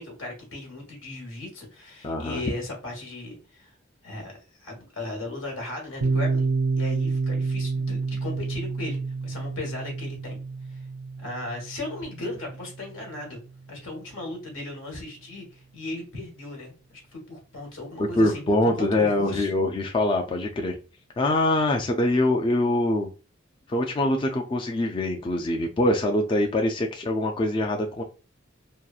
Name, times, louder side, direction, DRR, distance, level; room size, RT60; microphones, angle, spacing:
voice 1, 0.0-3.7 4.0-10.4 10.7-10.8 11.2-13.4 13.7-18.4 18.7-19.5, left 2 dB, 85° left, 1 dB, 1.3 m, -37 dB
voice 2, 2.0-2.4 18.0-20.8 21.2-23.1 23.7-28.0, left 1 dB, 25° left, 2 dB, 0.3 m, -24 dB
Piano, 6.0-13.4, right 4 dB, 65° right, 0.4 m, -29 dB
2.8 x 2.4 x 2.3 m, 0.33 s
head